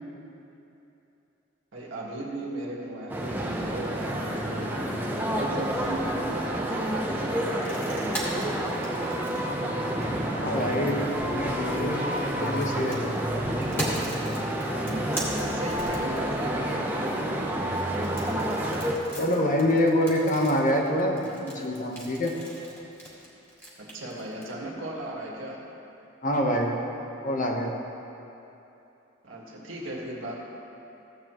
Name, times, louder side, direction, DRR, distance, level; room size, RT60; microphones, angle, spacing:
voice 1, 1.7-4.9 5.3-8.1 15.3-17.2 23.8-25.6 29.2-30.4, right 1 dB, 80° right, -3 dB, 1.8 m, -37 dB
sound 1, 3.1-19.0, right 1 dB, 10° right, 0.8 m, -29 dB
sound 2, 7.4-10.3 11.8-16.5 17.9-24.4, equal, 10° left, 2.2 m, -38 dB
voice 2, 10.3-13.2 19.1-22.3 26.2-26.8 27.2-27.8, left 1 dB, 40° left, 0 dB, 1.1 m, -26 dB
15.5 x 8.5 x 3.1 m, 2.9 s
head